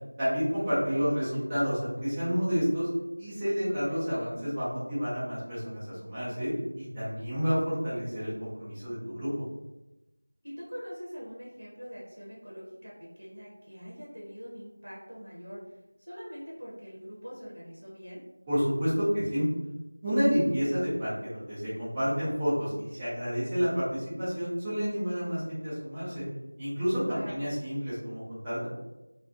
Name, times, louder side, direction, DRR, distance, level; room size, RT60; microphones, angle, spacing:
voice 1, 0.2-2.9 3.2-9.3 18.5-19.5 20.0-26.2 26.6-28.7, equal, 5° right, -14 dB, 0.4 m, -29 dB
voice 2, 10.4-12.9 13.2-18.2 27.1-27.5, equal, 60° right, -5 dB, 0.7 m, -43 dB
2.3 x 2.3 x 2.5 m, 1.0 s
figure-of-eight pair, 175°, 0 cm